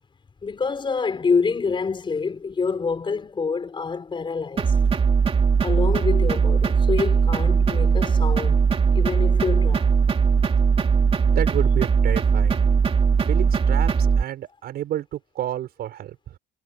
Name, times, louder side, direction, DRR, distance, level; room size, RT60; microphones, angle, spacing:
voice 1, 0.4-4.7 5.6-8.6 8.9-9.9, left 5 dB, 30° left, 5.6 m, -26 dB
sound 1, 4.6-14.2, right 6 dB, 35° right, 3.0 m, -19 dB
voice 2, 11.3-12.6 13.2-13.9 14.2-16.3, right 12 dB, 65° right, 6.3 m, -30 dB
cardioid pair, 110°, 17 cm